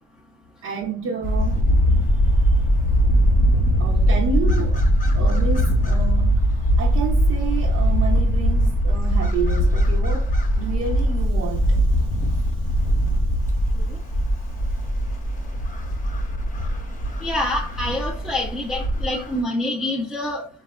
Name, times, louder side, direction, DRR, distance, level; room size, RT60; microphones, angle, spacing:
voice 1, 0.6-1.6 2.4-2.5 3.8-4.9 5.1-12.7, right 6 dB, 55° right, 0.7 m, -30 dB
sound 1, 1.2-19.4, equal, 25° left, 0.8 m, -20 dB
voice 2, 17.2-20.5, left 1 dB, ahead, 0.5 m, -26 dB
3.4 x 2.3 x 2.2 m
supercardioid pair, 75°, 31 cm